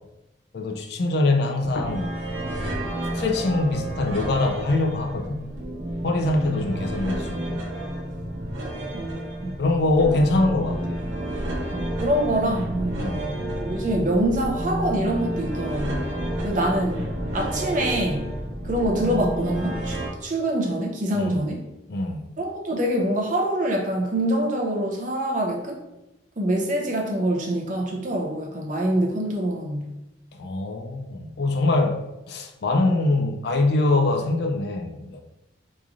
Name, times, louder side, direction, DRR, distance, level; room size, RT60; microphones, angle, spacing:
voice 1, 0.5-2.1 3.1-5.4 6.0-7.6 9.6-11.0 13.0-13.3 21.1-21.5 21.9-22.3 30.4-35.2, left 2 dB, 55° left, 3 dB, 0.4 m, -23 dB
sound 1, 1.6-20.1, right 1 dB, 85° right, 1.0 m, -30 dB
voice 2, 8.9-9.6 11.7-13.0 13.6-16.1 16.4-17.1 17.3-18.3 18.6-21.6 22.4-25.8 26.4-30.0, right 1 dB, 40° right, 0 dB, 0.6 m, -25 dB
3.1 x 2.5 x 3.6 m, 0.93 s
head